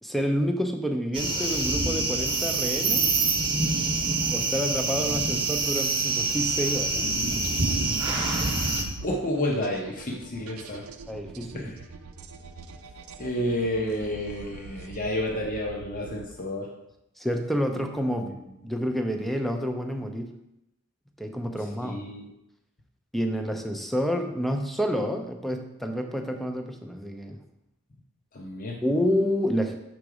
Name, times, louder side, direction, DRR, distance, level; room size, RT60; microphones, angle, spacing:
voice 1, 0.0-3.2 4.3-7.0 7.7-8.2 11.1-11.7 17.2-18.4 18.6-20.3 21.2-22.0 23.1-27.4 28.8-29.8, equal, ahead, 4 dB, 0.5 m, -29 dB
sound 1, 1.1-8.8, right 3 dB, 25° right, 1.0 m, -26 dB
sound 2, 6.4-16.6, right 4 dB, 90° right, 0.5 m, -44 dB
voice 2, 9.0-10.8 11.5-11.7 13.2-16.7 21.8-22.3 28.3-28.8, left 1 dB, 40° left, -1 dB, 0.8 m, -30 dB
6.2 x 4.0 x 4.8 m, 0.87 s
head